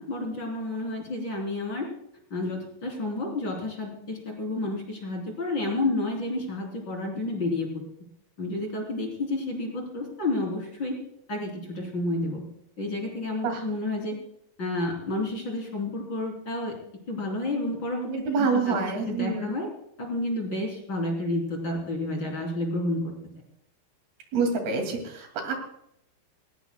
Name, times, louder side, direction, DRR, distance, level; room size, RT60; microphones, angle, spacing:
voice 1, 0.0-1.9 2.3-7.8 8.4-11.0 11.3-12.4 12.8-14.2 14.6-16.7 17.1-18.1 18.4-18.8 19.1-19.7 20.0-23.1, left 2 dB, 30° left, 0 dB, 3.7 m, -30 dB
voice 2, 18.1-19.5 24.3-25.6, right 4 dB, 75° right, 4 dB, 4.3 m, -27 dB
20.5 x 18.5 x 2.2 m, 0.74 s
omnidirectional pair, 4.5 m